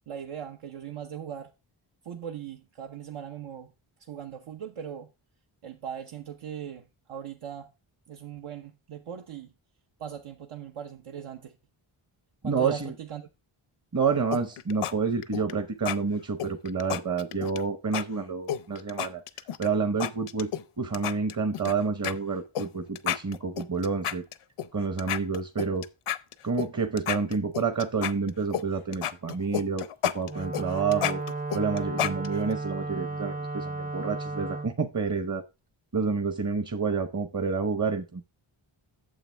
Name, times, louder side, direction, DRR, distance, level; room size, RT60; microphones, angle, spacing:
voice 1, 0.1-1.5 2.0-3.7 4.1-5.1 5.6-7.7 8.1-9.5 10.0-11.6 12.4-13.3, right 9 dB, 80° right, 1.0 m, -39 dB
voice 2, 12.4-12.9 13.9-19.2 19.6-20.5 20.8-24.2 24.7-25.8 26.4-31.2 31.5-35.4 35.9-38.2, right 5 dB, 35° right, 0.9 m, -29 dB
sound 1, 14.3-14.9 15.2-15.5 15.9-16.0 16.4-17.6 17.9-18.0 18.5-19.7 20.0-20.6 20.9-21.7 22.0-22.1 22.6-22.7 23.0-24.7 25.0-26.7 27.0-28.6 28.9-32.5, left 10 dB, 90° left, 0.7 m, -31 dB
Wind instrument woodwind instrument, 30.2-34.7, right 3 dB, 20° right, 0.5 m, -34 dB
9.0 x 7.1 x 3.3 m
wide cardioid pair, 100°, 50 cm